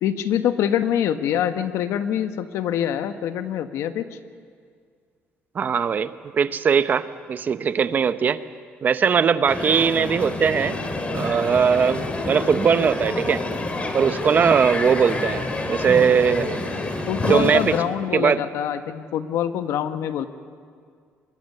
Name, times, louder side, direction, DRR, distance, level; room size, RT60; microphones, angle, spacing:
voice 1, 0.0-4.0 17.1-20.2, left 10 dB, 80° left, 9 dB, 1.2 m, -25 dB
voice 2, 5.5-8.4 8.8-10.8 11.1-13.4 13.9-15.4 15.7-16.5 17.2-17.8 18.1-18.4, right 6 dB, 40° right, 13 dB, 0.8 m, -20 dB
Crowd, 9.5-17.8, left 2 dB, 25° left, 2.6 m, -28 dB
24.0 x 22.5 x 6.8 m, 2.1 s
cardioid pair, 130°, 5 cm